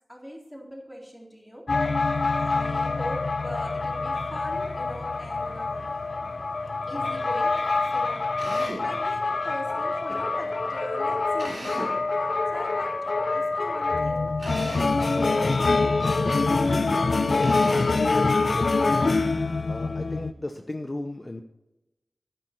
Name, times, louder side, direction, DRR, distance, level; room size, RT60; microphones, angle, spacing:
voice 1, 0.1-5.9 6.9-12.0 12.5-16.6 16.9-18.8, equal, 5° left, -2 dB, 3.7 m, -41 dB
sound 1, 1.7-20.3, left 3 dB, 70° left, 0.5 m, -25 dB
Drill, 8.4-8.9 11.4-12.0 14.4-15.0 17.4-18.0, right 1 dB, 85° right, 4.2 m, -36 dB
voice 2, 19.7-21.4, left 1 dB, 35° left, 6 dB, 0.8 m, -35 dB
11.0 x 10.0 x 4.6 m, 0.98 s
wide cardioid pair, 65°, 0 cm